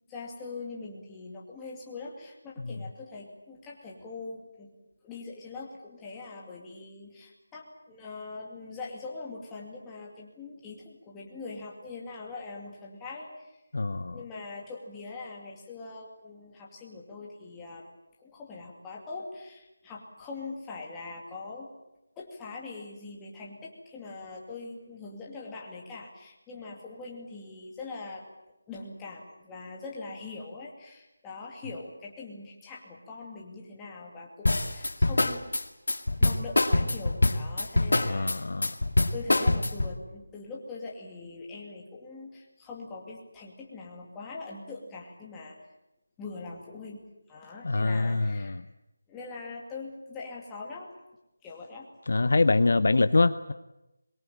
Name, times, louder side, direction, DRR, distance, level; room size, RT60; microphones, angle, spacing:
voice 1, 0.0-4.7 5.0-13.6 14.1-17.9 18.2-21.7 22.2-28.2 28.7-35.4 36.2-38.5 39.1-45.6 46.2-48.6 49.1-50.9 51.4-51.9, left 3 dB, 5° left, -3 dB, 2.5 m, -42 dB
voice 2, 13.7-14.2 37.9-38.7 47.6-48.6 52.1-53.5, left 3 dB, 50° left, 12 dB, 0.8 m, -24 dB
sound 1, 34.5-40.0, left 2 dB, 80° left, 2.3 m, -24 dB
22.5 x 22.5 x 9.1 m, 0.94 s
figure-of-eight pair, 175°, 0 cm